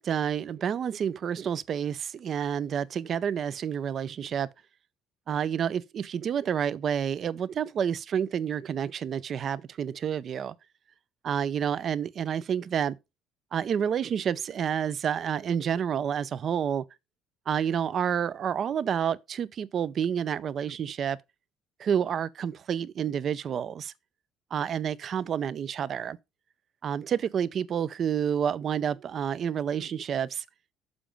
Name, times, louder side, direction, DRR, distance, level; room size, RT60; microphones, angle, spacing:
voice 1, 0.0-4.5 5.3-10.5 11.2-13.0 13.5-16.8 17.5-21.2 21.8-23.9 24.5-26.2 26.8-30.4, right 8 dB, 35° right, 0.5 m, -29 dB
7.0 x 5.0 x 5.2 m
cardioid pair, 160°, 0 cm